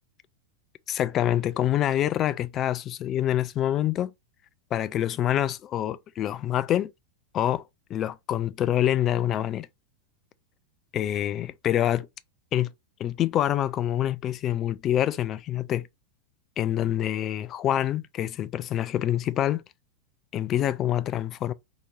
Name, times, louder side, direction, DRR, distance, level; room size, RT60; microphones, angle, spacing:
voice 1, 0.9-4.1 4.7-6.9 7.3-7.6 7.9-9.7 10.9-12.1 12.5-12.7 13.0-15.9 16.6-19.6 20.3-21.5, left 11 dB, 30° left, 0.4 m, -26 dB
4.2 x 2.9 x 2.5 m
figure-of-eight pair, 90°, 0 cm